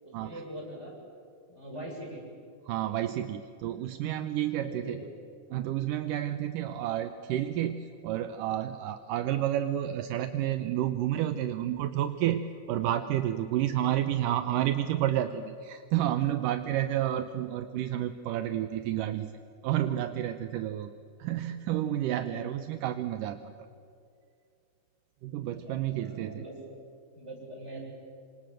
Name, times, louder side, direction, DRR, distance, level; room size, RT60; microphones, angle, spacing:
voice 1, 0.0-0.9 1.5-2.2 4.7-5.1 6.7-6.9 13.8-14.0 16.7-16.9 22.2-22.5 25.5-26.5 27.1-27.8, right 1 dB, 15° right, -2 dB, 7.4 m, -43 dB
voice 2, 2.7-5.0 5.5-19.3 19.6-20.9 21.2-23.4 25.2-26.5, right 12 dB, 75° right, 9 dB, 2.1 m, -30 dB
27.0 x 25.5 x 7.8 m, 2.5 s
omnidirectional pair, 4.6 m